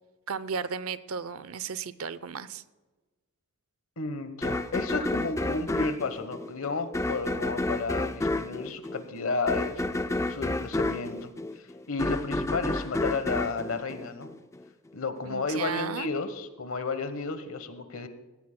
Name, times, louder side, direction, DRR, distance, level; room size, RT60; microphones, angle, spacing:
voice 1, 0.3-2.6 15.2-16.1, right 6 dB, 85° right, 15 dB, 0.6 m, -34 dB
voice 2, 4.0-9.8 10.3-14.4 14.9-18.1, left 3 dB, 70° left, 10 dB, 1.1 m, -32 dB
sound 1, 4.4-14.6, left 2 dB, 15° left, 0.4 m, -30 dB
17.0 x 15.5 x 2.2 m, 1.2 s
head